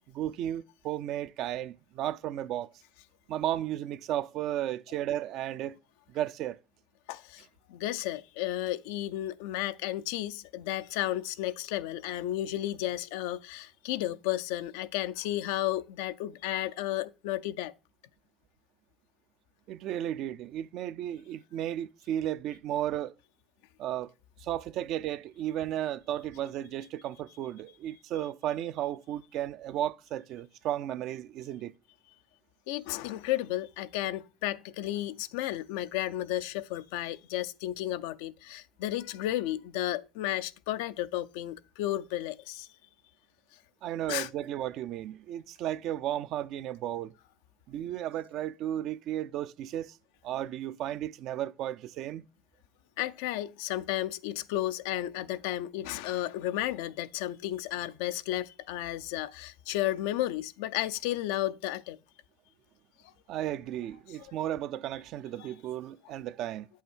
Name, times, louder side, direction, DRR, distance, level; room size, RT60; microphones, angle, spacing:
voice 1, 0.1-2.7 3.3-5.8 6.1-6.6 19.7-23.1 23.8-24.1 24.4-31.7 43.8-47.1 47.7-50.0 50.2-52.3 63.3-66.7, right 12 dB, 65° right, 0.4 m, -34 dB
voice 2, 7.1-7.4 7.7-17.7 32.7-42.7 44.1-44.3 53.0-62.0, left 14 dB, 85° left, 0.4 m, -33 dB
8.1 x 5.6 x 4.4 m
supercardioid pair, 90°, 0 cm